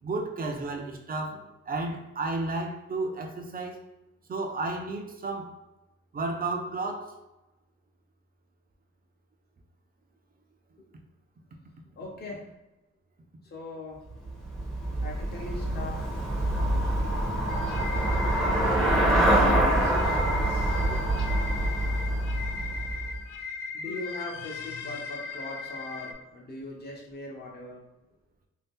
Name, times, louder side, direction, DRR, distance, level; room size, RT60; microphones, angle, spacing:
voice 1, 0.0-3.8 4.3-5.6 6.1-7.2, right 3 dB, 30° right, 0.6 m, -32 dB
voice 2, 12.0-12.5 13.4-14.0 15.0-16.2 16.6-17.1 19.0-21.0 23.4-23.5 23.7-27.8, left 2 dB, 35° left, 0.9 m, -41 dB
Traffic noise roadway noise / Bicycle, 14.1-23.3, right 1 dB, ahead, 0.8 m, -26 dB
sound 1, 17.5-26.1, left 5 dB, 85° left, 0.5 m, -38 dB
2.8 x 2.4 x 3.6 m
cardioid pair, 90°, 30 cm